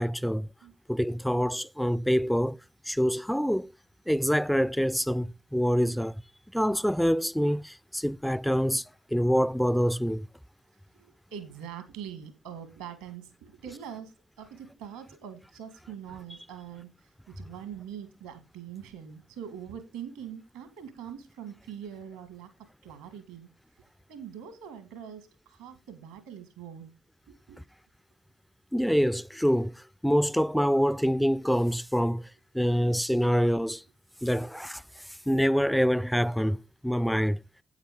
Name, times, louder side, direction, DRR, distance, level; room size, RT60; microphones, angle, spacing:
voice 1, 0.0-0.5 0.9-2.6 2.9-3.7 4.1-6.1 6.5-8.8 9.1-10.3 28.7-29.7 30.0-32.2 32.5-33.8 34.2-34.8 35.3-36.6 36.8-37.4, equal, ahead, 0.4 m, -25 dB
voice 2, 11.0-16.9 17.3-23.5 24.1-26.9 27.3-27.6, right 8 dB, 80° right, 2.1 m, -43 dB
8.8 x 8.8 x 3.7 m
figure-of-eight pair, 40°, 0 cm